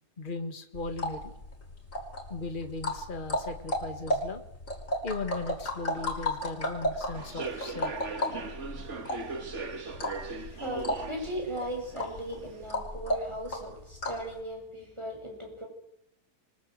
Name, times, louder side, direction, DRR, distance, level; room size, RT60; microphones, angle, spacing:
voice 1, 0.2-1.3 2.3-4.4 5.0-7.9 10.4-10.6, left 3 dB, 30° left, 7 dB, 2.1 m, -37 dB
sound 1, 0.7-14.3, left 1 dB, 50° left, 5.4 m, -34 dB
Human voice / Subway metro underground, 7.1-12.7, right 3 dB, 45° right, 2.1 m, -39 dB
voice 2, 10.6-15.7, right 1 dB, 15° right, 1 dB, 8.2 m, -37 dB
27.5 x 24.0 x 8.0 m, 0.81 s
omnidirectional pair, 1.7 m